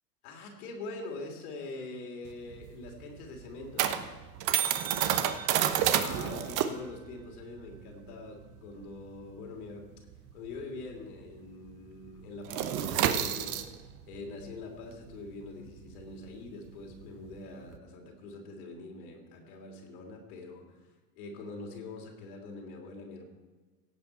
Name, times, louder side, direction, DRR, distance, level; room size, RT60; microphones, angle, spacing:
voice 1, 0.2-4.1 5.9-9.9 10.3-13.7 14.1-20.9 21.2-23.2, left 3 dB, 60° left, 1 dB, 3.1 m, -44 dB
sound 1, 2.3-11.2 11.5-11.7 12.0-17.8, right 10 dB, 40° right, 1.0 m, -31 dB
17.0 x 7.6 x 4.4 m, 1.3 s
hypercardioid pair, 95°, 50 cm